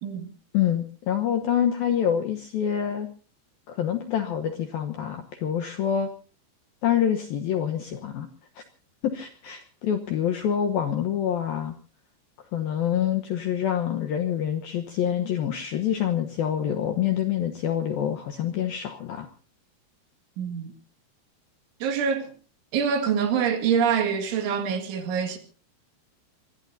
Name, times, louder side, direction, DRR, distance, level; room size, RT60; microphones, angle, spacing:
voice 1, 0.5-3.1 3.7-6.1 6.8-8.3 8.6-8.7 9.0-11.7 12.5-19.3, left 9 dB, 70° left, 2.2 m, -26 dB
voice 2, 20.4-20.7 21.8-22.3 22.7-25.4, right 7 dB, 70° right, 4.4 m, -25 dB
25.0 x 20.5 x 2.7 m
omnidirectional pair, 5.7 m